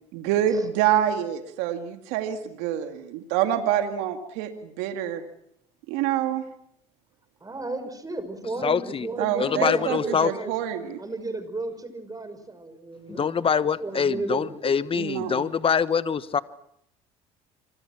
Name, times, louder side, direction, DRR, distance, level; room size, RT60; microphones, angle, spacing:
voice 1, 0.1-5.2 5.9-6.4 9.2-11.0 14.9-15.5, right 10 dB, 75° right, 2.3 m, -26 dB
voice 2, 7.4-10.5 11.0-13.3 13.8-14.7, right 2 dB, 20° right, 6.2 m, -33 dB
voice 3, 8.6-9.1 9.4-10.3 13.1-16.4, left 6 dB, 30° left, 1.2 m, -24 dB
26.5 x 25.0 x 6.1 m
hypercardioid pair, 75°, 17 cm